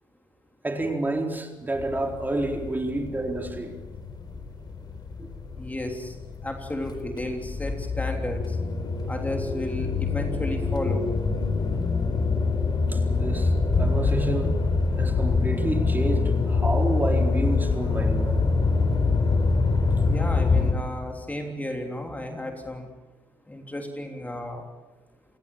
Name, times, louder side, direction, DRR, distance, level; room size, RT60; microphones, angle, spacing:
voice 1, 0.6-3.7 12.9-13.5 13.8-14.5 15.0-18.4, right 2 dB, 15° right, 3 dB, 4.2 m, -29 dB
sound 1, 1.7-20.7, left 4 dB, 40° left, 4.2 m, -25 dB
voice 2, 5.6-6.2 6.4-8.6 9.1-11.1 20.1-22.9 23.5-24.6, left 1 dB, 15° left, 3 dB, 3.4 m, -33 dB
28.5 x 18.0 x 7.3 m, 1.2 s
hypercardioid pair, 55°, 11 cm